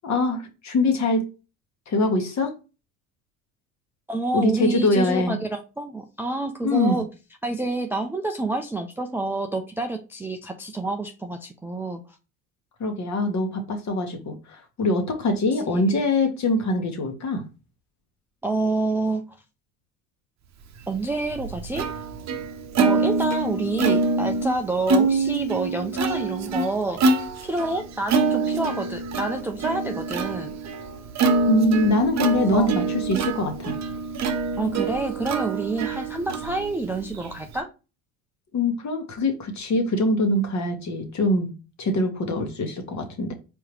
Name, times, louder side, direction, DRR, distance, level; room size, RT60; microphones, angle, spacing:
voice 1, 0.0-1.3 1.9-2.5 4.3-5.3 6.6-7.0 12.8-17.4 31.5-33.8 38.5-41.5 41.8-43.3, left 2 dB, 40° left, 1.4 m, -23 dB
voice 2, 4.1-7.1 7.4-12.2 15.6-15.9 18.4-19.4 20.9-21.9 22.8-30.5 32.5-32.7 34.6-37.7, right 2 dB, 5° right, 0.4 m, -28 dB
Plucked string instrument, 20.9-37.6, right 3 dB, 40° right, 0.8 m, -25 dB
4.6 x 3.5 x 3.1 m
hypercardioid pair, 70°, 43 cm